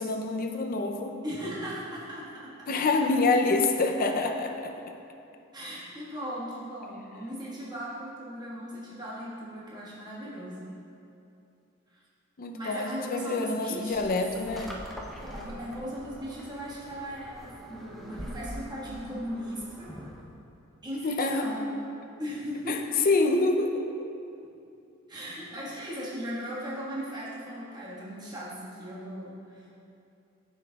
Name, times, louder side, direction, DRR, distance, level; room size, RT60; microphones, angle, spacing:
voice 1, 0.0-1.2 2.7-5.0 12.4-14.7 21.0-21.5 22.7-22.8 23.0-24.1, left 3 dB, 45° left, 4 dB, 0.5 m, -27 dB
voice 2, 1.2-2.8 5.5-10.6 11.9-12.0 12.5-14.2 15.2-19.9 20.8-21.7 22.2-23.1 25.1-29.8, equal, 20° right, -8 dB, 1.5 m, -38 dB
sound 1, 13.9-20.3, equal, ahead, 0.6 m, -44 dB
9.1 x 7.2 x 2.3 m, 2.6 s
head